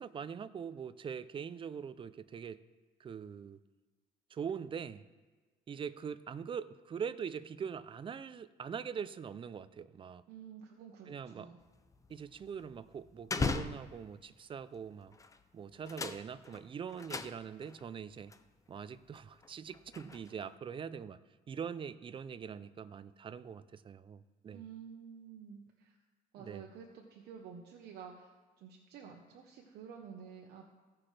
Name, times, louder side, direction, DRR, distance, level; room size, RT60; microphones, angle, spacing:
voice 1, 0.0-2.6 3.0-3.6 4.3-5.0 5.7-10.2 11.1-11.5 12.1-15.2 15.5-18.3 18.7-21.2 21.5-24.6 26.4-26.7, right 7 dB, 30° right, 15 dB, 0.4 m, -43 dB
voice 2, 10.3-11.6 24.5-26.0 26.3-28.3 28.6-30.7, right 7 dB, 75° right, 0 dB, 1.0 m, -50 dB
sound 1, 11.6-14.3 15.1-15.4 15.7-17.8 18.3-18.4 19.0-20.5, left 4 dB, 20° left, 0.5 m, -39 dB
16.0 x 5.9 x 3.3 m, 1.3 s
cardioid pair, 110°, 17 cm